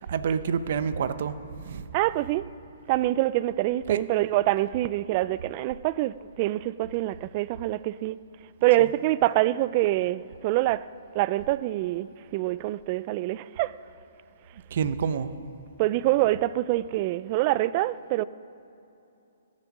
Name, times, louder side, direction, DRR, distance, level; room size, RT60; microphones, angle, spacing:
voice 1, 0.1-1.3 1.6-1.8 3.9-4.0 14.7-15.3, right 7 dB, 50° right, 0.7 m, -27 dB
voice 2, 1.9-2.4 2.9-8.2 8.6-10.8 11.1-13.7 15.8-18.2, right 16 dB, 30° right, 0.3 m, -25 dB
17.5 x 10.5 x 6.0 m
hypercardioid pair, 160°, 0 cm